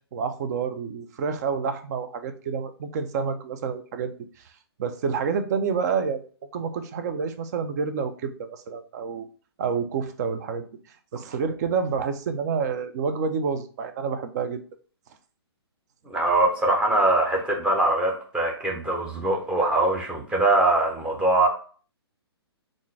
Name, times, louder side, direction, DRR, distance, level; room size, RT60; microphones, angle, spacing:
voice 1, 0.1-4.1 4.8-6.2 6.5-9.3 9.6-10.7 11.1-14.6, right 5 dB, 40° right, 0.5 m, -28 dB
voice 2, 16.1-21.5, right 2 dB, 10° right, 0.8 m, -22 dB
3.7 x 2.5 x 3.3 m
figure-of-eight pair, 130°, 14 cm